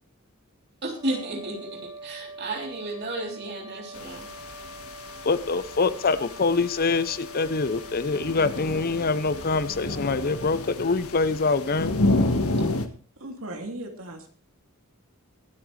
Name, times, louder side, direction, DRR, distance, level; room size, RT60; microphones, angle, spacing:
voice 1, 0.8-4.3, right 2 dB, 50° right, 1 dB, 3.3 m, -33 dB
sound 1, 0.9-11.5, right 1 dB, 20° right, 5.0 m, -44 dB
sound 2, 3.9-12.9, left 2 dB, 85° left, 1.6 m, -30 dB
voice 2, 5.2-11.9, left 4 dB, 45° left, 15 dB, 0.7 m, -25 dB
voice 3, 13.2-14.3, right 1 dB, 70° right, 4 dB, 2.5 m, -37 dB
22.5 x 8.8 x 3.2 m, 0.41 s
head